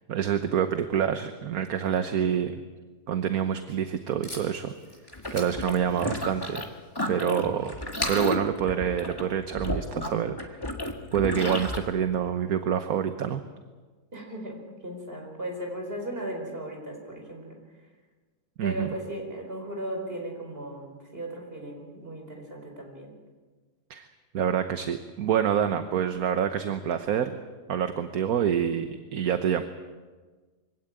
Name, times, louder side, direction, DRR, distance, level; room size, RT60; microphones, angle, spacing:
voice 1, 0.1-2.6 3.1-4.7 5.3-6.6 7.1-7.8 8.1-10.6 11.1-13.4 18.6-18.9 23.9-24.1 24.3-27.3 27.7-29.6, right 8 dB, 65° right, 8 dB, 1.5 m, -27 dB
Packing tape duct tape, 3.3-9.8, left 2 dB, 45° left, 5.8 m, -41 dB
sound 1, 5.1-6.7 6.9-11.8, left 1 dB, 15° left, 1.9 m, -32 dB
voice 2, 14.1-17.6 18.6-23.1, right 1 dB, 35° right, 2 dB, 5.0 m, -37 dB
24.0 x 17.0 x 8.9 m, 1.4 s
omnidirectional pair, 1.7 m